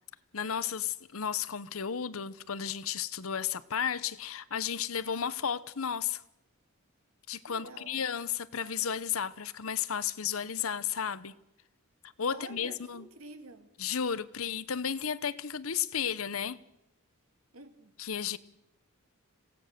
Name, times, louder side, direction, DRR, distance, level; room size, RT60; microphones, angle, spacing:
voice 1, 0.3-6.2 7.3-11.3 12.2-13.1 13.8-16.6 18.0-18.4, left 8 dB, 70° left, 0.9 m, -33 dB
voice 2, 7.5-8.0 12.3-13.7 17.5-17.9, right 2 dB, 80° right, 2.4 m, -48 dB
27.0 x 17.0 x 6.7 m
head